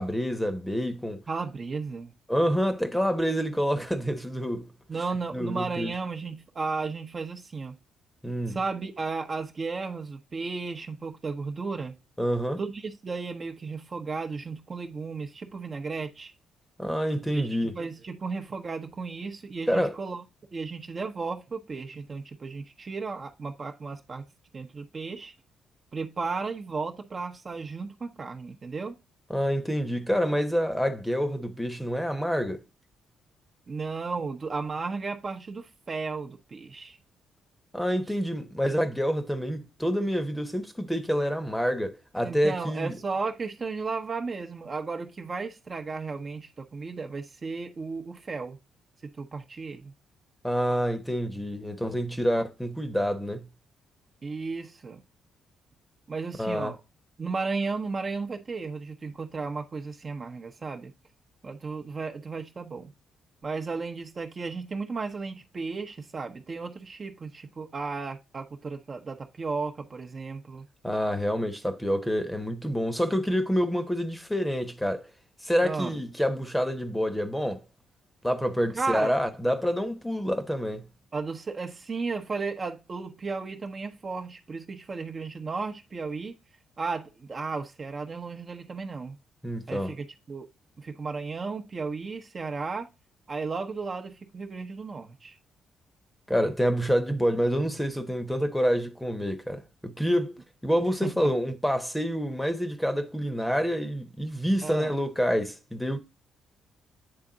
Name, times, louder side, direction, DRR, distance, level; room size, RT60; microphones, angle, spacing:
voice 1, 0.0-1.2 2.3-4.7 5.3-5.9 8.2-8.6 12.2-12.6 16.8-17.7 19.7-19.9 29.3-32.6 37.7-43.0 50.4-53.5 56.4-56.7 70.8-75.0 75.4-77.6 78.2-80.8 89.4-89.9 96.3-106.0, equal, 5° left, 1.0 m, -27 dB
voice 2, 1.3-2.1 4.9-7.8 8.5-11.9 12.6-16.3 17.3-20.2 20.5-24.3 24.5-25.3 25.9-29.0 33.7-37.0 42.2-48.6 49.0-49.9 54.2-55.0 56.1-56.8 57.2-60.9 61.4-62.9 63.4-70.7 75.6-76.0 78.7-79.2 81.1-86.3 86.8-89.2 89.7-90.5 90.8-92.9 93.3-95.4 101.0-101.3 104.6-104.9, right 4 dB, 35° right, 0.9 m, -34 dB
8.7 x 3.5 x 3.9 m
cardioid pair, 90°, 0 cm